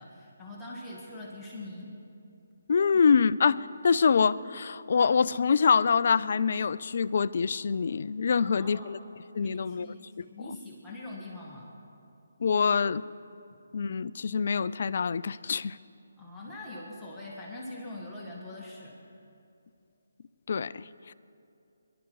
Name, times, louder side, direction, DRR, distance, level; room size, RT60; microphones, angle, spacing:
voice 1, 0.0-2.0 2.9-3.0 8.4-8.9 9.4-11.7 16.2-19.0, left 2 dB, 5° left, -7 dB, 2.0 m, -43 dB
voice 2, 2.7-9.0 9.3-9.9 12.4-13.0 13.7-15.8 20.5-20.9, left 6 dB, 55° left, 16 dB, 0.4 m, -25 dB
22.5 x 12.0 x 4.8 m, 2.6 s
figure-of-eight pair, 155°, 0 cm